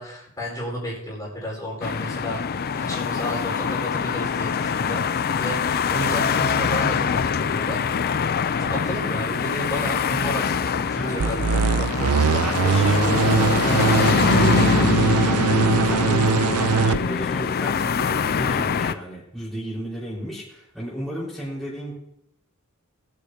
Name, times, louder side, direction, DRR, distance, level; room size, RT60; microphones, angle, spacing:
voice 1, 0.0-2.4 2.8-5.0 5.4-7.8 8.6-12.7, equal, 15° left, -5 dB, 4.6 m, -32 dB
sound 1, 1.8-18.9, left 6 dB, 45° left, 0.4 m, -24 dB
sound 2, 11.2-17.0, right 5 dB, 85° right, 0.6 m, -21 dB
voice 2, 12.4-15.1 15.4-21.9, equal, ahead, -7 dB, 4.5 m, -33 dB
21.5 x 8.5 x 2.8 m, 0.77 s
head